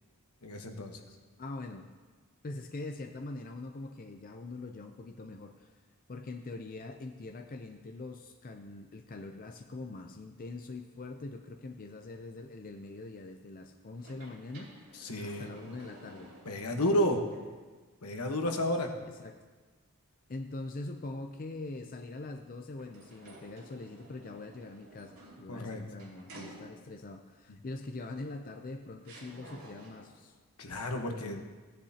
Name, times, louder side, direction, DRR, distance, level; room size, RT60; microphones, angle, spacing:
voice 1, 0.4-1.0 15.0-15.5 16.5-17.2 18.0-18.9 25.5-25.8 30.6-31.4, equal, 85° left, 4 dB, 1.2 m, -31 dB
voice 2, 1.4-1.9 2.4-5.7 6.1-14.7 15.2-16.4 16.7-17.2 19.1-19.4 20.3-30.4 30.6-31.4, left 2 dB, 40° left, 5 dB, 0.5 m, -43 dB
sound 1, 14.0-16.9 17.3-17.4 22.8-27.1 28.2-28.3 29.0-30.2, right 1 dB, 75° right, 2.7 m, -52 dB
16.0 x 10.0 x 2.8 m, 1.4 s
head